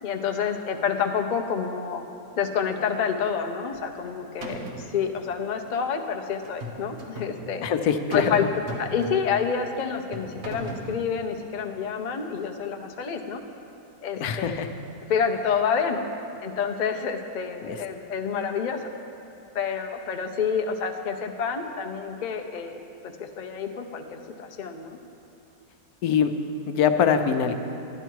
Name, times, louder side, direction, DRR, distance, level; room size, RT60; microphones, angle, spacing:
voice 1, 0.0-2.0 2.4-7.7 8.1-8.4 8.8-13.4 14.0-14.5 15.1-16.0 16.4-18.9 19.5-22.8 23.2-25.0, left 6 dB, 50° left, 4 dB, 0.5 m, -28 dB
sound 1, 3.7-4.1 4.4-4.9 6.4-7.4 8.1-8.4 8.7-9.4 10.1-10.9, right 1 dB, 50° right, 1.3 m, -36 dB
voice 2, 7.6-8.4 14.2-14.7 17.6-17.8 26.0-26.3 26.7-27.5, left 7 dB, 80° left, 7 dB, 1.1 m, -23 dB
11.0 x 11.0 x 4.6 m, 2.9 s
omnidirectional pair, 1.6 m